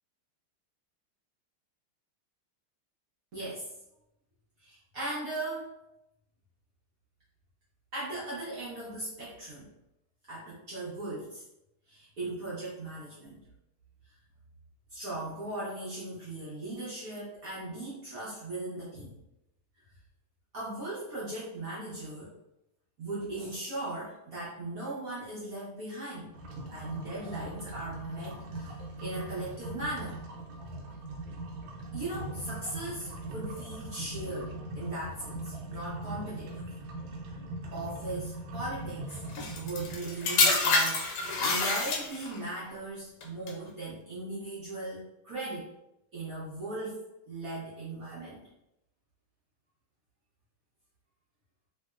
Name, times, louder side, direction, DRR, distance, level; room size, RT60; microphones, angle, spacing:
voice 1, 3.3-3.7 4.6-5.7 7.9-9.7 10.3-11.4 11.9-13.4 14.1-14.2 14.9-19.2 20.5-22.4 23.0-26.3 26.7-30.2 31.9-36.7 37.7-39.2 39.5-45.7 46.1-48.4, right 2 dB, 60° right, -9 dB, 0.9 m, -38 dB
sound 1, 26.3-42.3, right 2 dB, 90° right, 1.6 m, -41 dB
sound 2, 39.4-42.4 43.2-43.5, left 3 dB, 75° left, 1.3 m, -27 dB
3.3 x 2.7 x 2.3 m, 0.86 s
omnidirectional pair, 2.4 m